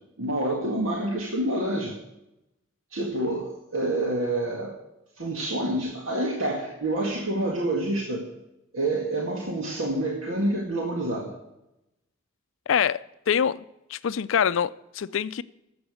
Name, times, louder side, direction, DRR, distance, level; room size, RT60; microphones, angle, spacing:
voice 1, 0.2-2.0 2.9-4.8 5.2-8.3 8.7-11.3, right 1 dB, 90° right, 2.0 m, -27 dB
voice 2, 12.7-13.6 13.9-15.4, left 8 dB, 80° left, 0.4 m, -25 dB
12.0 x 8.0 x 6.3 m
head